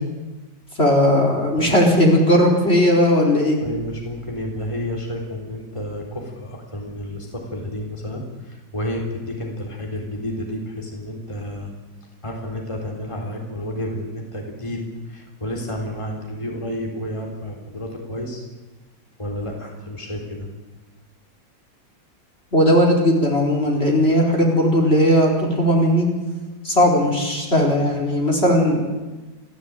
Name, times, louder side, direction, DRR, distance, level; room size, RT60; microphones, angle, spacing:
voice 1, 0.8-3.6 22.5-26.1 26.6-28.9, equal, 30° left, 1 dB, 4.3 m, -17 dB
voice 2, 3.6-11.7 12.2-18.4 19.2-20.5, left 1 dB, 15° left, 0 dB, 3.9 m, -30 dB
28.5 x 16.0 x 8.9 m, 1.2 s
omnidirectional pair, 2.0 m